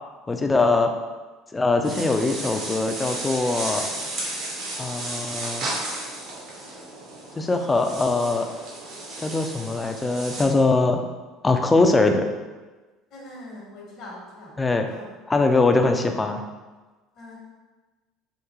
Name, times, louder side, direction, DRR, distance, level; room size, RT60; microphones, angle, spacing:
voice 1, 0.3-0.9 1.5-3.9 4.8-5.7 7.4-8.5 9.2-11.0 11.4-12.2 14.6-14.9 15.3-16.4, left 3 dB, 20° left, 5 dB, 0.4 m, -22 dB
sound 1, 1.8-10.4, right 2 dB, 65° right, 1.1 m, -33 dB
voice 2, 13.1-14.6 14.8-15.2 17.1-17.5, left 1 dB, 65° left, -4 dB, 1.2 m, -42 dB
3.7 x 2.6 x 2.9 m, 1.2 s
hypercardioid pair, 75°, 0 cm